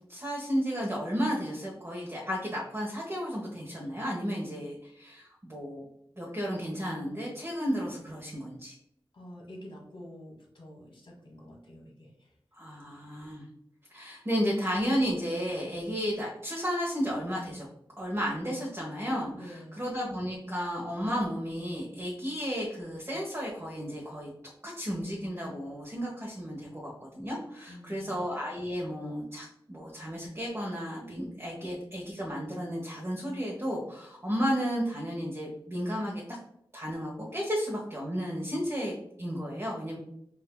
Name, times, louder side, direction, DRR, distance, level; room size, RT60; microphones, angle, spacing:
voice 1, 0.1-5.8 6.2-8.7 12.5-13.5 13.9-17.7 18.0-24.3 24.6-36.4 36.7-40.0, equal, 30° right, -4 dB, 1.1 m, -33 dB
voice 2, 9.1-12.3 19.3-19.8 27.7-28.2, equal, 70° left, -4 dB, 1.3 m, -48 dB
5.7 x 2.7 x 2.2 m, 0.74 s
wide cardioid pair, 50°, 9 cm